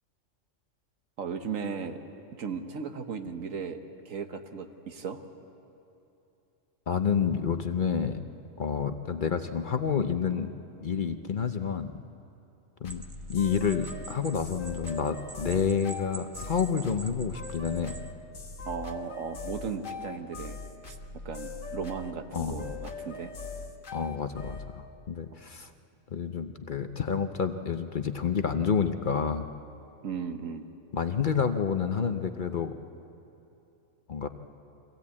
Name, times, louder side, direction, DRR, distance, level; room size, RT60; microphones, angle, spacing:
voice 1, 1.2-2.0 2.4-5.2 18.6-21.0 21.2-23.3 30.0-30.7, right 6 dB, 80° right, 7 dB, 1.5 m, -36 dB
voice 2, 6.9-8.2 8.6-10.5 10.8-11.9 12.8-13.0 13.3-17.9 22.3-22.6 23.9-25.7 26.1-29.5 30.9-32.7 34.1-34.3, left 6 dB, 45° left, 8 dB, 0.7 m, -29 dB
sound 1, 12.8-24.7, left 3 dB, 75° left, 1.7 m, -40 dB
sound 2, 12.9-18.1, right 4 dB, 35° right, 0.5 m, -47 dB
24.0 x 16.0 x 8.5 m, 2.9 s
omnidirectional pair, 1.3 m